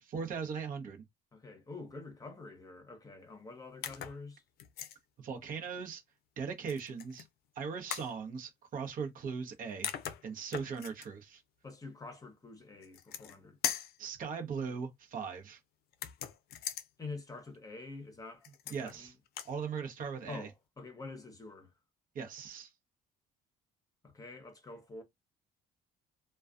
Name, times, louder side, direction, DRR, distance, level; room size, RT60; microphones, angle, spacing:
voice 1, 0.0-1.0 5.2-6.0 6.4-7.3 7.5-9.9 10.2-11.4 14.0-15.6 18.7-19.1 19.4-20.5 22.1-22.7, right 6 dB, 55° right, 0.8 m, -39 dB
voice 2, 1.3-4.4 11.6-13.6 17.0-19.1 20.3-21.7 24.0-25.0, left 3 dB, 20° left, 0.8 m, -47 dB
sound 1, 3.8-4.2 4.6-5.0 6.7-7.3 7.9-8.1 9.5-9.6 9.8-11.1 12.8-13.4 13.6-14.0 15.9-16.9 18.4-19.0 19.3-19.5, left 10 dB, 65° left, 0.5 m, -39 dB
2.3 x 2.2 x 2.4 m
cardioid pair, 110°, 17 cm